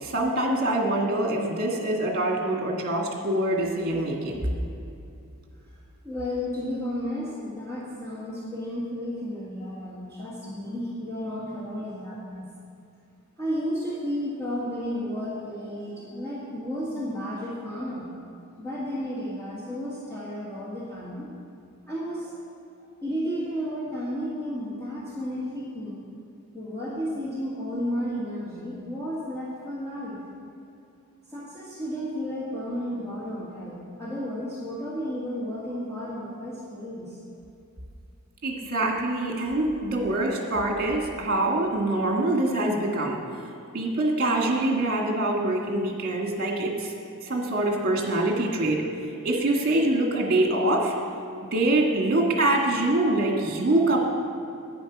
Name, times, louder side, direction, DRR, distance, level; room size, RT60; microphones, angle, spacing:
voice 1, 0.0-4.4 38.4-43.2 43.7-46.9 47.2-48.8 49.2-50.9 51.4-54.0, right 1 dB, 45° right, 0 dB, 1.8 m, -24 dB
voice 2, 6.0-12.5 13.4-18.1 18.6-21.3 21.9-22.5 23.0-26.0 26.5-30.2 31.3-37.2, equal, 10° left, -9 dB, 1.8 m, -32 dB
10.0 x 9.1 x 6.1 m, 2.6 s
head